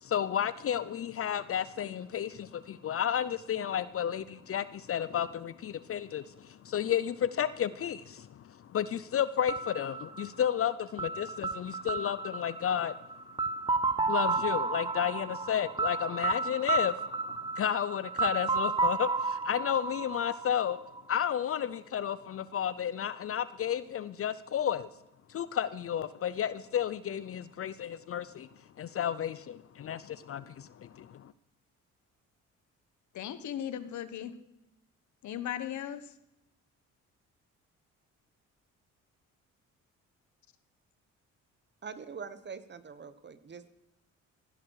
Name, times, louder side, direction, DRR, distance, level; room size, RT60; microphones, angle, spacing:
voice 1, 0.0-12.9 14.1-20.8 21.1-24.9 25.3-28.5 28.8-31.3, left 9 dB, 50° left, 16 dB, 0.6 m, -32 dB
sound 1, 9.5-21.3, right 3 dB, 15° right, 0.9 m, -32 dB
voice 2, 33.1-34.4 35.2-36.1, left 10 dB, 70° left, 12 dB, 1.3 m, -37 dB
voice 3, 41.8-43.7, right 5 dB, 35° right, 13 dB, 1.3 m, -44 dB
17.0 x 15.5 x 4.8 m, 0.87 s
cardioid pair, 90°, 30 cm